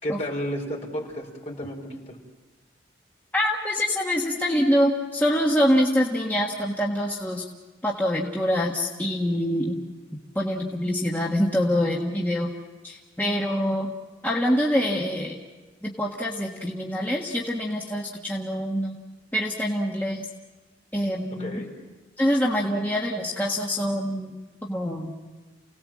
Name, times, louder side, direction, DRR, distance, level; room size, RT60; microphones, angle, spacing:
voice 1, 0.0-2.2 21.4-21.7, equal, 35° left, 0 dB, 4.6 m, -32 dB
voice 2, 3.3-7.4 7.8-9.8 10.3-12.5 12.8-13.9 14.2-15.3 15.8-18.9 19.3-20.3 20.9-21.5 22.2-24.3 24.6-25.1, equal, 10° left, -3 dB, 1.6 m, -25 dB
29.0 x 18.5 x 7.5 m, 1.3 s
head